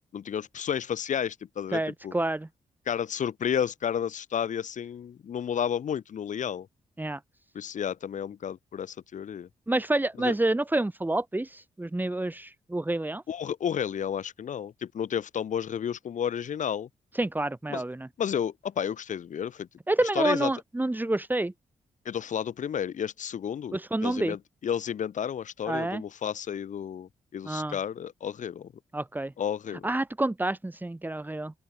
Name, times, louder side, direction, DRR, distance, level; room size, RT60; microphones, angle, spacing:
voice 1, 0.1-2.2 2.9-6.7 7.5-9.5 10.2-10.3 13.3-16.9 17.7-17.8 18.2-19.7 20.1-20.5 22.1-28.7 29.4-29.9, left 8 dB, 70° left, 3.9 m, -32 dB
voice 2, 1.7-2.5 7.0-7.2 9.7-13.2 17.2-18.1 19.9-21.5 23.7-24.4 25.7-26.0 27.4-27.8 28.9-29.3 29.8-31.5, right 2 dB, 15° right, 2.9 m, -28 dB
open air
cardioid pair, 85°, 13 cm